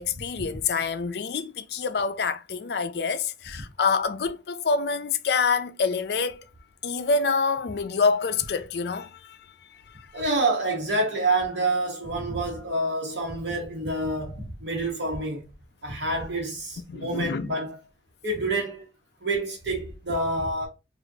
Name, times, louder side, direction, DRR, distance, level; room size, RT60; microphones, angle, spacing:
voice 1, 0.0-6.4 6.8-9.4 9.7-10.1 16.9-17.5, left 5 dB, 60° left, 0.4 m, -26 dB
voice 2, 10.1-15.4 15.8-17.8 18.2-18.9 19.2-20.7, right 2 dB, 70° right, 1.2 m, -27 dB
4.9 x 2.5 x 2.7 m
head